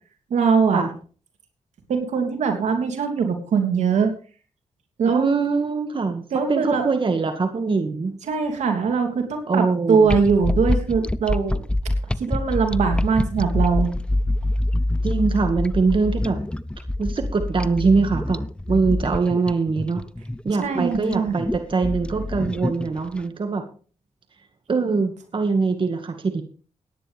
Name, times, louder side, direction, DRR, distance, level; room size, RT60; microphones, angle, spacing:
voice 1, 0.3-0.9 1.9-4.1 5.0-5.3 6.3-6.8 8.3-11.6 12.2-13.9 20.6-21.3, right 5 dB, 80° right, 4 dB, 3.1 m, -21 dB
voice 2, 5.1-6.2 6.5-8.2 9.5-10.1 15.0-16.4 17.0-18.4 18.7-20.0 20.4-23.6 24.7-26.4, right 4 dB, 45° right, 6 dB, 2.0 m, -22 dB
sound 1, 10.1-23.2, left 1 dB, 10° left, 0.6 m, -25 dB
17.5 x 10.5 x 3.5 m, 0.39 s
cardioid pair, 70°, 12 cm